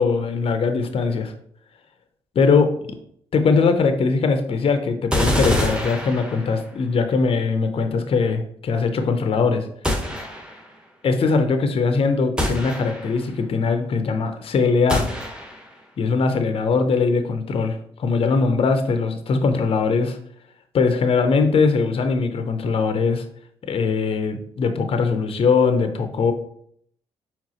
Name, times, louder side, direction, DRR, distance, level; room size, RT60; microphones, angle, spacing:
voice 1, 0.0-1.3 2.4-2.7 3.3-9.6 11.0-15.1 16.0-20.2 20.7-23.2 23.7-26.3, left 4 dB, 50° left, 7 dB, 0.6 m, -21 dB
sound 1, 5.1-6.7 9.8-10.7 12.4-13.3 14.9-15.8, left 1 dB, 5° right, 1.2 m, -25 dB
4.6 x 3.5 x 2.9 m, 0.65 s
supercardioid pair, 60°, 12 cm